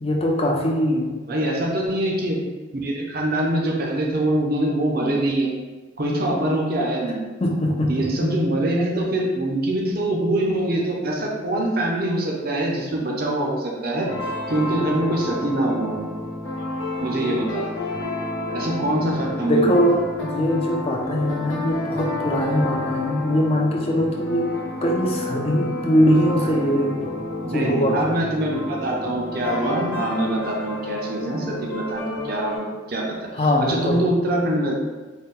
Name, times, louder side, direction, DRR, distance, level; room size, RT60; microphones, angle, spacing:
voice 1, 0.0-1.1 7.4-8.3 19.5-24.5 24.8-27.1 27.4-28.1 33.3-34.0, equal, 30° left, -1 dB, 0.5 m, -21 dB
voice 2, 1.3-2.4 2.7-5.5 6.0-7.2 7.9-14.1 14.5-16.1 17.0-17.7 18.5-19.8 27.4-34.7, right 1 dB, 50° right, -1 dB, 0.6 m, -24 dB
sound 1, 14.1-32.6, left 2 dB, 85° left, 0.9 m, -30 dB
4.0 x 2.2 x 3.7 m, 1.2 s
head